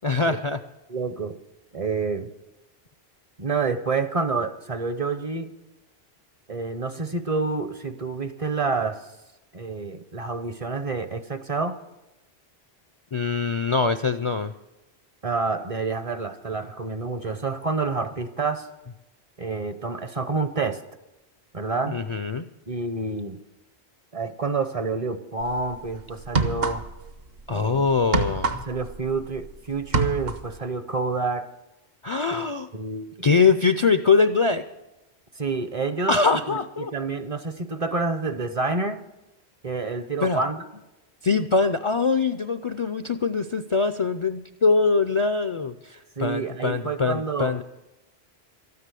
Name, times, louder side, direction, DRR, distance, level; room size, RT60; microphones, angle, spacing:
voice 1, 0.0-0.6 13.1-14.5 21.9-22.4 27.5-28.6 32.0-32.7 33.2-34.6 36.1-36.9 40.2-40.4 41.2-47.6, left 4 dB, 45° left, 10 dB, 0.4 m, -23 dB
voice 2, 0.9-1.4 1.7-2.3 3.4-5.5 6.5-9.1 9.5-11.8 15.2-18.7 19.4-20.8 21.5-22.0 22.7-23.4 24.1-26.9 27.5-27.9 28.7-31.5 32.3-33.1 35.3-39.0 39.6-40.6 46.2-47.6, right 4 dB, 40° right, 10 dB, 0.7 m, -28 dB
sound 1, 25.4-25.6 26.2-27.1 27.4-29.5 29.8-30.5, right 3 dB, 65° right, 1.1 m, -26 dB
13.0 x 9.5 x 8.3 m, 0.98 s
omnidirectional pair, 1.1 m